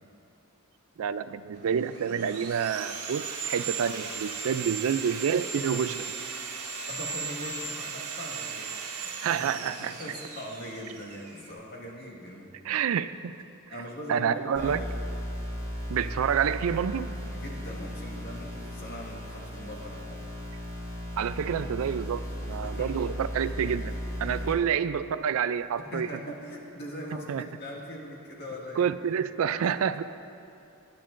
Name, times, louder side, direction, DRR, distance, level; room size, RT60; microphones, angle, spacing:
voice 1, 1.0-6.0 9.2-9.9 12.6-13.3 14.1-14.8 15.9-17.1 21.2-26.1 27.3-27.4 28.8-30.0, right 7 dB, 65° right, 13 dB, 0.3 m, -28 dB
Sawing, 1.6-11.5, right 5 dB, 85° right, 1.4 m, -37 dB
voice 2, 6.9-9.4 9.8-12.5 13.7-14.9 17.3-20.2 22.6-23.0 24.2-24.6 25.8-28.9 29.6-29.8, equal, 50° left, -3 dB, 1.8 m, -41 dB
sound 1, 14.5-24.5, equal, 15° left, 1.9 m, -36 dB
19.5 x 10.5 x 2.5 m, 2.7 s
head